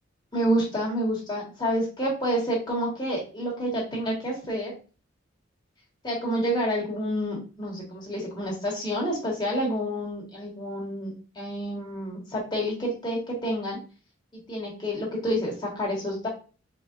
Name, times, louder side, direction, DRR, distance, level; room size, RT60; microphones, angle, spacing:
voice 1, 0.3-4.8 6.0-13.8 14.3-16.3, equal, 20° left, -4 dB, 1.5 m, -29 dB
4.5 x 2.9 x 2.5 m, 0.34 s
head